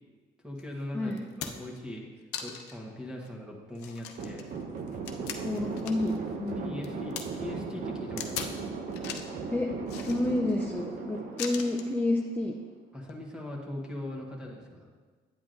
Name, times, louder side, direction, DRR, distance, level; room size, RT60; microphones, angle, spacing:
voice 1, 0.4-2.1 2.4-4.5 6.6-8.6 12.9-14.9, left 1 dB, 5° right, -2 dB, 1.2 m, -40 dB
sound 1, 0.6-0.7 1.1-1.8 2.3-2.8 3.2-3.3 3.7-6.2 6.5-7.2 8.2-8.6 8.9-9.4 9.9-10.6 11.4-11.9 13.0-13.1, left 8 dB, 85° left, 0.7 m, -39 dB
voice 2, 0.9-1.3 5.4-6.1 6.4-7.0 9.5-9.7 10.1-12.6, left 2 dB, 10° left, 1 dB, 0.5 m, -30 dB
sound 2, 4.2-12.5, right 4 dB, 50° right, 0.9 m, -37 dB
9.1 x 8.0 x 2.6 m, 1.5 s
cardioid pair, 110°, 17 cm